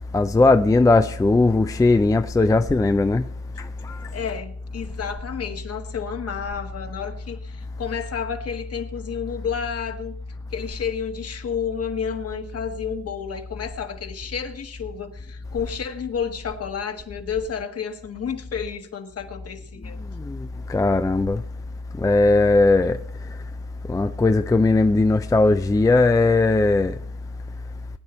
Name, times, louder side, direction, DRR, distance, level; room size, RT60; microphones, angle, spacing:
voice 1, 0.1-3.3 3.6-4.0 20.2-21.4 22.0-23.0 23.9-26.9, left 3 dB, 10° left, 0.5 m, -18 dB
voice 2, 4.1-10.2 10.5-20.0, left 7 dB, 50° left, 1.6 m, -31 dB
19.5 x 9.5 x 4.4 m
cardioid pair, 90°, 30 cm